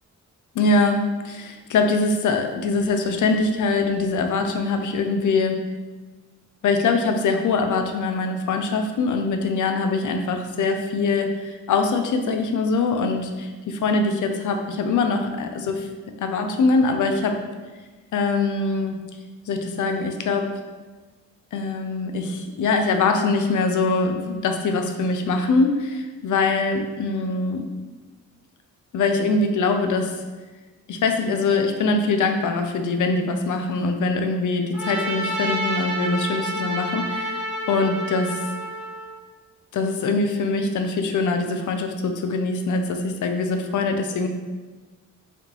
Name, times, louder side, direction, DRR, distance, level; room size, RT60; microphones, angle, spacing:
voice 1, 0.5-5.5 6.6-15.9 16.2-17.4 18.1-18.9 19.5-20.5 21.5-27.7 28.9-30.1 30.9-38.4 39.7-44.3, left 3 dB, 65° left, 5 dB, 0.5 m, -23 dB
Trumpet, 34.7-39.2, right 1 dB, 5° right, 1.2 m, -29 dB
3.6 x 3.5 x 2.9 m, 1.3 s
cardioid pair, 65°, 33 cm